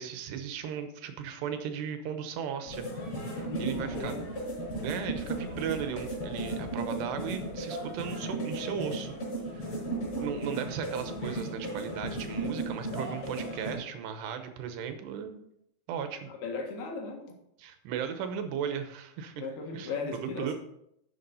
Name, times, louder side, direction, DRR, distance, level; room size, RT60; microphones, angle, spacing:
voice 1, 0.0-4.2 4.8-9.1 9.5-9.8 10.2-15.4 15.9-16.3 17.6-19.3 19.7-20.5, right 8 dB, 80° right, 8 dB, 3.1 m, -36 dB
sound 1, 2.6-13.7, right 1 dB, 45° left, 5.5 m, -35 dB
voice 2, 3.5-4.2 16.3-17.2 19.4-20.5, left 4 dB, 70° left, 1 dB, 3.5 m, -37 dB
11.5 x 7.5 x 4.1 m, 0.76 s
omnidirectional pair, 4.8 m